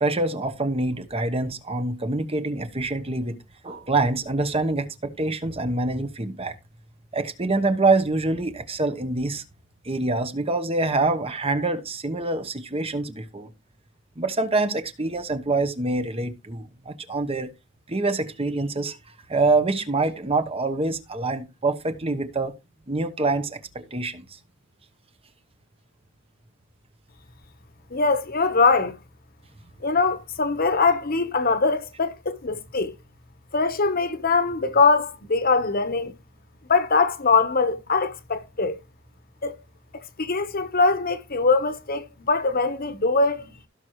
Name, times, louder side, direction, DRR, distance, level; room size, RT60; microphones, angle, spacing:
voice 1, 0.0-3.4 3.6-6.5 7.1-9.4 9.8-13.5 14.2-17.5 17.9-19.0 19.3-22.5 22.9-24.2, right 3 dB, 30° right, 1.1 m, -25 dB
voice 2, 27.9-29.0 29.8-32.9 33.5-36.1 36.7-38.8 39.4-39.5 39.9-43.6, left 4 dB, 45° left, 1.2 m, -22 dB
16.5 x 6.3 x 3.2 m
head